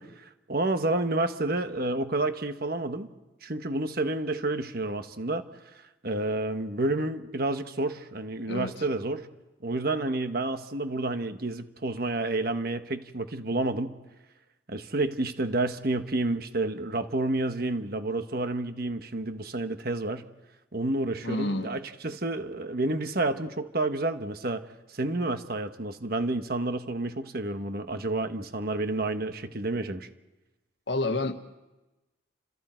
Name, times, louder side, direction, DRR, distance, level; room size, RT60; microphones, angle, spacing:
voice 1, 0.0-3.1 3.4-9.3 9.6-14.0 14.7-20.3 20.7-30.1, right 2 dB, 50° right, 8 dB, 1.3 m, -30 dB
voice 2, 21.2-21.7 30.9-31.6, left 2 dB, 60° left, 8 dB, 1.4 m, -29 dB
29.5 x 27.0 x 4.5 m, 1.1 s
head